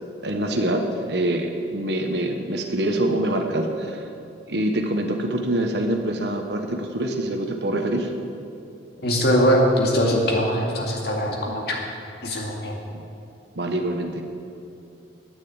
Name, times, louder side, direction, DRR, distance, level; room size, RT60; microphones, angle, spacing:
voice 1, 0.2-4.1 4.5-8.1 12.9-13.0 13.5-14.2, right 1 dB, 65° right, 4 dB, 1.1 m, -25 dB
voice 2, 9.0-11.8 12.2-12.8, equal, 60° left, -1 dB, 2.2 m, -21 dB
10.0 x 9.2 x 8.7 m, 2.6 s
head